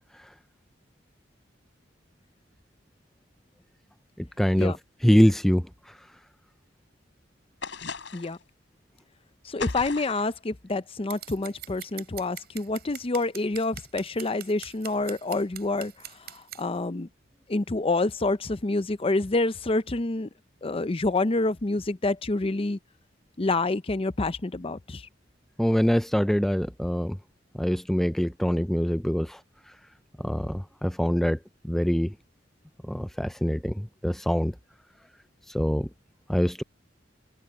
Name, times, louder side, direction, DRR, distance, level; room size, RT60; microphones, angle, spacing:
voice 1, 4.2-4.7 5.0-5.7 25.6-27.2 27.6-29.4 30.2-31.4 31.6-32.1 32.9-34.5 35.5-35.9 36.3-36.6, equal, ahead, 0.3 m, -24 dB
sound 1, 7.6-8.4 9.6-10.3, left 5 dB, 75° left, 6.2 m, -37 dB
voice 2, 9.4-15.9 16.3-17.1 17.5-20.3 20.6-22.8 23.4-25.1, left 2 dB, 30° left, 0.7 m, -27 dB
Scissors, 11.1-16.6, right 12 dB, 55° right, 7.1 m, -43 dB
head